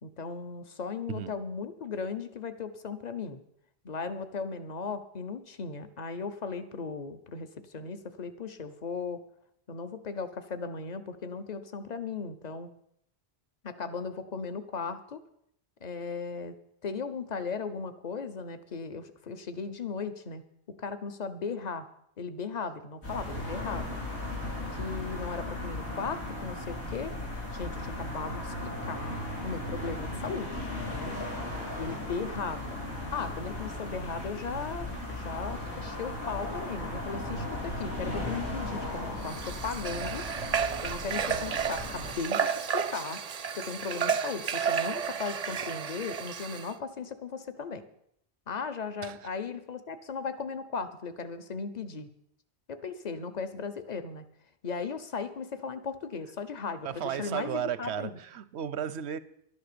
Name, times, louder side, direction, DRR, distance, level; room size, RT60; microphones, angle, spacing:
voice 1, 0.0-3.4 3.8-9.2 9.7-12.7 13.6-15.2 15.8-16.6 16.8-20.4 20.8-21.9 22.2-24.0 24.7-27.1 27.5-29.2 29.4-31.2 31.8-32.8 33.1-40.3 40.8-43.2 43.5-47.8 48.5-52.1 52.7-54.2 54.6-58.1, left 5 dB, 40° left, 1.0 m, -37 dB
voice 2, 1.1-1.4 49.0-49.3 56.8-59.2, right 9 dB, 90° right, 1.0 m, -34 dB
sound 1, 23.0-42.1, left 1 dB, 80° left, 4.3 m, -36 dB
Water / Water tap faucet, 39.2-46.7, right 7 dB, 45° right, 0.6 m, -32 dB
12.0 x 9.9 x 6.8 m
omnidirectional pair, 1.1 m